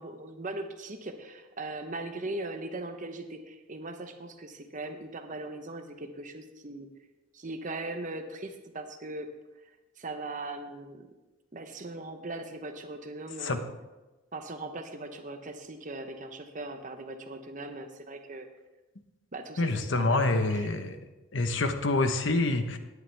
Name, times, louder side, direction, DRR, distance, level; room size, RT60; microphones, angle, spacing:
voice 1, 0.0-6.9 7.3-9.3 10.0-11.1 11.5-13.6 14.3-18.5 19.3-20.8, right 2 dB, 40° right, 6 dB, 0.9 m, -39 dB
voice 2, 19.6-21.0 21.3-22.8, left 2 dB, 60° left, 8 dB, 1.0 m, -26 dB
17.5 x 9.5 x 3.5 m, 1.1 s
head